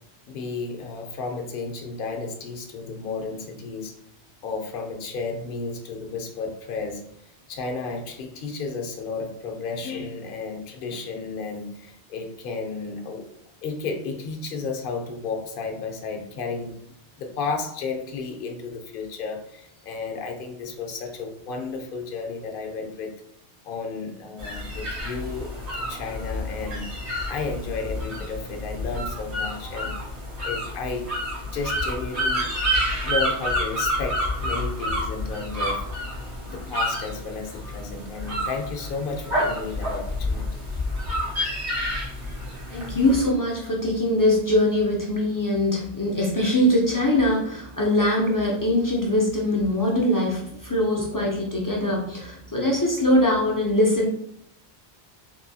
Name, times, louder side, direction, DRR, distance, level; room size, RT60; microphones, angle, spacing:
voice 1, 0.3-3.9 4.4-7.0 7.5-13.2 13.6-16.8 17.2-23.1 23.7-26.8 27.3-30.0 30.4-31.1 31.5-32.5 33.0-35.8 36.4-40.7, left 4 dB, 60° left, 4 dB, 0.7 m, -33 dB
sound 1, 24.4-43.3, equal, 75° right, 1.5 m, -29 dB
voice 2, 42.7-54.1, left 1 dB, 30° left, -3 dB, 0.4 m, -22 dB
3.6 x 2.6 x 2.7 m, 0.72 s
omnidirectional pair, 1.1 m